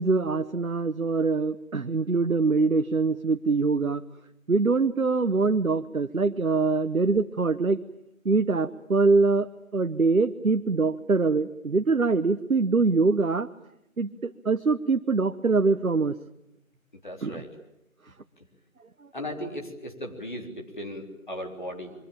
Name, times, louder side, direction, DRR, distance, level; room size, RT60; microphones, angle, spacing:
voice 1, 0.0-4.0 4.5-7.8 8.2-13.5 14.0-16.2 17.2-17.4, right 4 dB, 75° right, 9 dB, 1.2 m, -24 dB
voice 2, 17.0-17.5 19.1-21.9, equal, 35° left, 2 dB, 3.8 m, -37 dB
27.5 x 23.5 x 8.8 m, 0.81 s
figure-of-eight pair, 180°, 42 cm